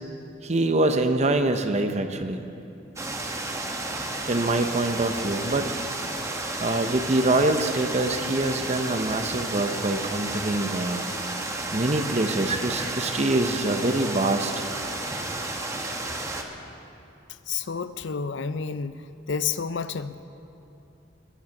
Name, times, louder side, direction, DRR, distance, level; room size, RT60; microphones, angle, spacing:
voice 1, 0.4-2.5 4.3-5.7 6.6-11.1 11.7-14.6, right 2 dB, 35° right, 7 dB, 0.8 m, -25 dB
sound 1, 3.0-16.4, right 2 dB, 15° right, 1.1 m, -32 dB
voice 2, 17.5-19.0 19.3-20.3, left 6 dB, 70° left, 13 dB, 0.5 m, -30 dB
20.5 x 9.4 x 7.1 m, 2.8 s
head